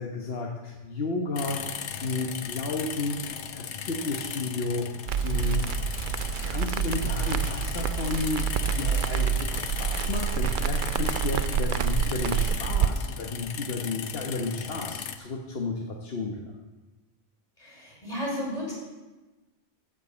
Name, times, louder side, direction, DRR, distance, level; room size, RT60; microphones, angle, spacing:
voice 1, 0.0-1.8 2.0-3.2 3.5-4.9 5.2-5.6 6.4-16.5, left 3 dB, 60° left, 0 dB, 1.3 m, -32 dB
sound 1, 1.4-15.2, left 8 dB, 85° left, 1.0 m, -37 dB
Crackle, 5.1-12.9, right 7 dB, 60° right, 0.6 m, -27 dB
voice 2, 17.6-18.7, equal, 30° left, -5 dB, 4.7 m, -33 dB
13.5 x 5.3 x 8.2 m, 1.2 s
omnidirectional pair, 1.1 m